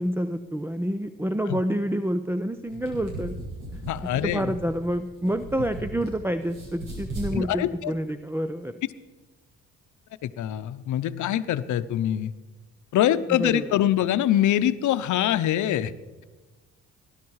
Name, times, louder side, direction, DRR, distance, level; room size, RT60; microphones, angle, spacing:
voice 1, 0.0-3.4 3.7-8.8 13.4-13.7, equal, 10° right, 11 dB, 0.5 m, -28 dB
sound 1, 2.6-6.1 6.4-7.3, right 1 dB, 90° right, 6.3 m, -37 dB
voice 2, 3.9-4.6 7.3-7.9 10.2-12.3 12.9-15.9, left 12 dB, 75° left, 13 dB, 0.8 m, -24 dB
19.0 x 12.0 x 4.8 m, 1.3 s
cardioid pair, 90°, 30 cm